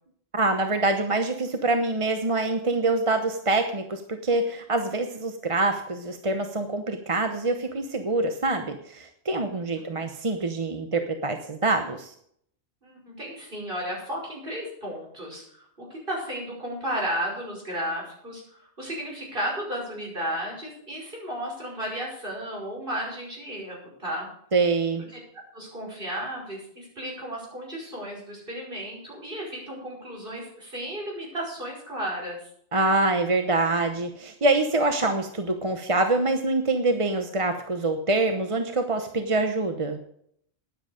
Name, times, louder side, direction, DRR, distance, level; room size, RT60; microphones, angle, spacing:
voice 1, 0.3-12.1 24.5-25.0 32.7-40.0, right 2 dB, 30° right, 6 dB, 0.9 m, -25 dB
voice 2, 9.5-10.0 12.8-24.3 25.5-32.4, equal, 50° right, -2 dB, 5.7 m, -34 dB
13.0 x 10.5 x 5.1 m, 0.67 s
omnidirectional pair, 1.1 m